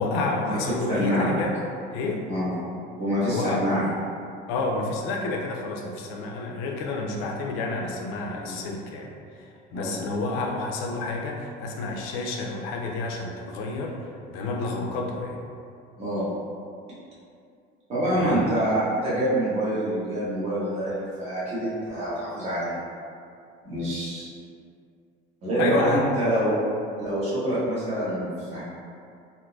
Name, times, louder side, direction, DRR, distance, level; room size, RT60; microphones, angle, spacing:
voice 1, 0.0-1.6 1.9-2.2 3.2-3.6 4.5-9.1 9.7-14.0 14.3-15.4 18.2-18.4 25.6-26.0, left 3 dB, 90° left, 0 dB, 0.5 m, -29 dB
voice 2, 0.9-1.4 2.3-2.5 3.0-3.8 8.4-8.6 9.7-10.0 16.0-16.3 17.9-22.8 23.6-24.3 25.4-26.6 27.0-28.6, right 1 dB, 30° right, -10 dB, 1.0 m, -26 dB
3.7 x 2.6 x 2.3 m, 2.4 s
cardioid pair, 180°, 21 cm